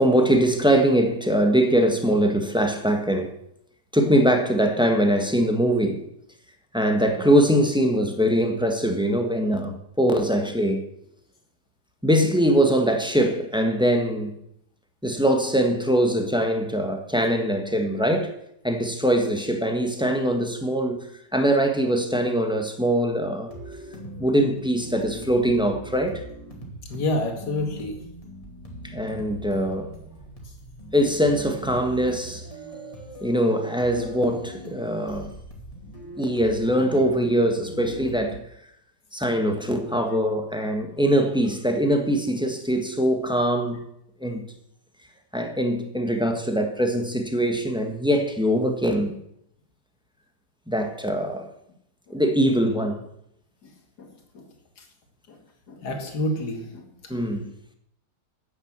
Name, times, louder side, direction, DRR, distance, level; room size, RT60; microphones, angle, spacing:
voice 1, 0.0-3.3 3.9-6.0 6.7-10.8 12.0-14.3 15.0-18.3 18.6-21.1 21.3-23.5 24.2-26.2 28.8-29.9 30.9-32.4 33.2-35.3 36.2-38.4 39.1-43.8 44.2-44.4 45.3-49.2 50.7-51.5 52.1-53.0 57.1-57.5, equal, 5° right, 1.2 m, -22 dB
sound 1, 23.5-38.4, equal, 20° left, 2.5 m, -40 dB
voice 2, 26.9-28.0 52.1-52.2 53.6-53.7 54.0-54.1 54.3-54.4 54.8-54.9 55.3-55.4 55.7-56.8 57.2-57.3, left 1 dB, 65° left, 2.6 m, -28 dB
10.0 x 8.9 x 7.4 m
omnidirectional pair, 1.9 m